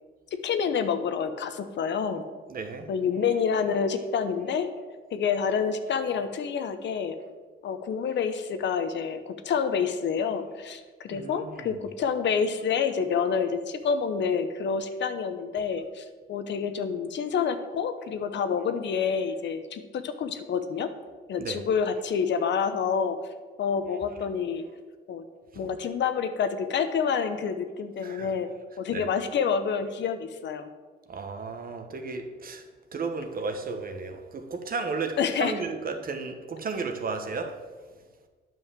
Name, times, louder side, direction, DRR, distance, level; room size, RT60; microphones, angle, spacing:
voice 1, 0.3-2.2 2.9-4.7 5.1-7.2 7.6-20.9 21.3-23.2 23.6-24.6 25.1-25.2 25.6-28.5 28.8-30.7 35.2-35.5, left 6 dB, 65° left, 9 dB, 0.9 m, -28 dB
voice 2, 2.5-2.9 11.1-11.8 21.4-21.6 25.5-25.6 28.0-28.3 28.9-29.1 31.1-32.6 32.9-37.6, right 4 dB, 45° right, 6 dB, 1.3 m, -34 dB
9.2 x 5.7 x 7.4 m, 1.4 s
cardioid pair, 90°, 20 cm